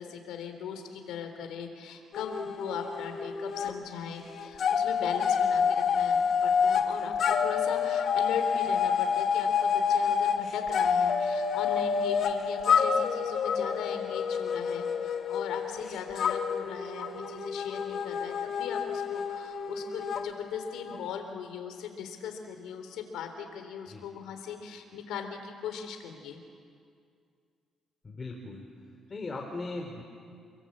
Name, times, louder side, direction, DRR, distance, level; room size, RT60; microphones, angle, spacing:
voice 1, 0.0-26.4, left 7 dB, 90° left, 6 dB, 3.6 m, -39 dB
sound 1, 2.1-3.8 4.0-21.1, left 6 dB, 65° left, 1.9 m, -28 dB
voice 2, 28.0-28.6 29.1-30.0, left 3 dB, 30° left, 2 dB, 3.8 m, -38 dB
29.0 x 22.5 x 8.8 m, 2.3 s
cardioid pair, 90°, 0 cm